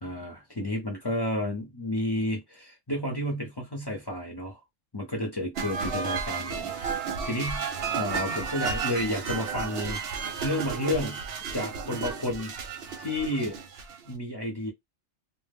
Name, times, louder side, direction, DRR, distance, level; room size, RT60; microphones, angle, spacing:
voice 1, 0.0-4.6 4.9-7.6 7.9-10.0 10.4-11.2 11.5-12.5 13.0-13.6 14.1-14.7, left 1 dB, 25° left, 0.5 m, -31 dB
sound 1, 5.5-14.1, right 5 dB, 60° right, 0.7 m, -33 dB
2.1 x 2.1 x 3.4 m
omnidirectional pair, 1.3 m